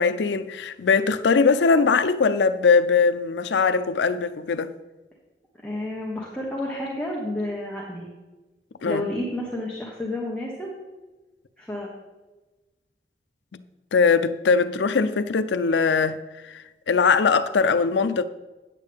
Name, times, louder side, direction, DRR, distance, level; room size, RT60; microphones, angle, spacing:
voice 1, 0.0-4.7 8.8-9.0 13.5-13.6 13.9-18.2, left 5 dB, 90° left, 0.5 m, -21 dB
voice 2, 5.6-8.1 8.8-10.7 11.6-11.9, left 1 dB, 5° left, 1.1 m, -30 dB
9.1 x 8.4 x 3.5 m
head